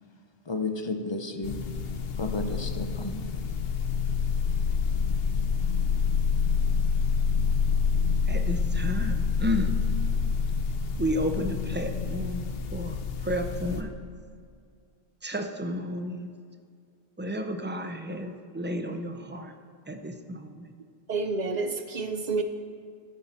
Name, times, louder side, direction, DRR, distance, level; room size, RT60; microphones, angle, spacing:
voice 1, 0.5-1.7 2.2-3.2, left 2 dB, 30° left, 7 dB, 0.6 m, -32 dB
sound 1, 1.4-13.8, left 6 dB, 70° left, 0.9 m, -27 dB
voice 2, 8.3-9.8 11.0-13.0 13.2-13.9 15.2-16.3 17.2-19.5 19.9-20.7, equal, 15° right, 5 dB, 0.5 m, -32 dB
voice 3, 21.1-22.4, right 4 dB, 50° right, 8 dB, 0.7 m, -29 dB
13.0 x 8.4 x 4.4 m, 2.2 s
omnidirectional pair, 1.1 m